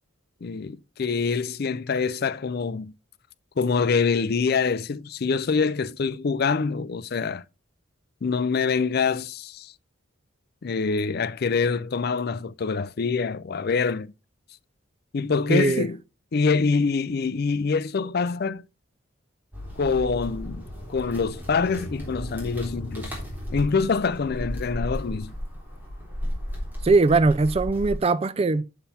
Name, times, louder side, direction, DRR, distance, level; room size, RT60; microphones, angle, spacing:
voice 1, 0.4-2.9 3.6-7.4 8.2-9.7 10.6-14.1 15.1-16.0 16.3-18.6 19.8-20.6 20.9-23.1 23.5-25.3, left 5 dB, 50° left, 0.4 m, -25 dB
voice 2, 15.5-15.9 26.8-28.6, right 3 dB, 30° right, 0.3 m, -20 dB
sound 1, 19.5-28.0, equal, 10° right, 3.4 m, -34 dB
7.5 x 6.9 x 4.2 m
head